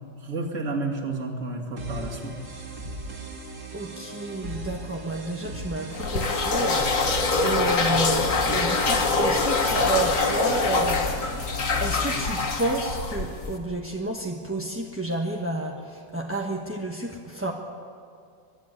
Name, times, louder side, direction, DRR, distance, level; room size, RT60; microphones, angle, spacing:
voice 1, 0.2-2.3, right 2 dB, 40° right, 0 dB, 2.6 m, -30 dB
sound 1, 1.8-12.4, right 2 dB, 60° right, 3.0 m, -38 dB
voice 2, 3.7-11.3 11.8-17.5, right 2 dB, 10° right, -1 dB, 0.9 m, -30 dB
sound 2, 5.9-13.6, left 3 dB, 45° left, 1.8 m, -24 dB
23.0 x 12.5 x 9.7 m, 2.3 s
omnidirectional pair, 2.0 m